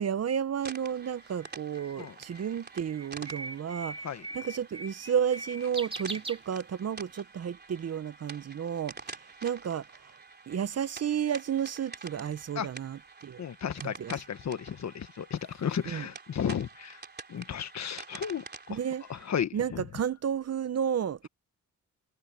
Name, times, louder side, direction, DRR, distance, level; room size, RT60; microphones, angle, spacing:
voice 1, 0.0-9.8 10.5-13.4 13.8-14.1 15.9-16.1 18.7-19.0 19.5-21.3, right 8 dB, 55° right, 1.0 m, -32 dB
sound 1, 0.6-19.4, right 4 dB, 35° right, 3.3 m, -48 dB
Bird, 0.8-7.0, right 2 dB, 20° right, 3.2 m, -42 dB
voice 2, 13.4-17.0 17.3-18.4 18.7-18.8 19.1-19.8, left 8 dB, 60° left, 1.6 m, -34 dB
cardioid pair, 95°, 31 cm